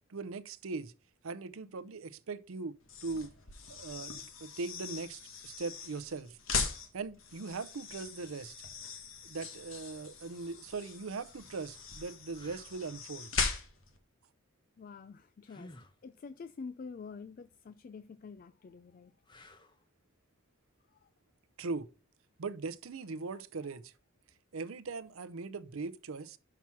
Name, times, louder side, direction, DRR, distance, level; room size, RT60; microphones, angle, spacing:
voice 1, 0.1-0.9 1.2-3.3 3.7-6.4 6.9-8.5 9.2-13.3 21.6-21.9 22.4-23.9 24.5-26.4, right 4 dB, 80° right, 0.6 m, -40 dB
sound 1, 2.8-14.0, left 4 dB, 70° left, 1.6 m, -40 dB
sound 2, 12.3-12.8 15.4-16.0 19.2-19.9 22.8-23.0, left 1 dB, 20° left, 0.9 m, -54 dB
voice 2, 14.8-15.7 16.0-19.1, left 5 dB, 40° left, 0.3 m, -47 dB
5.9 x 5.9 x 5.7 m
head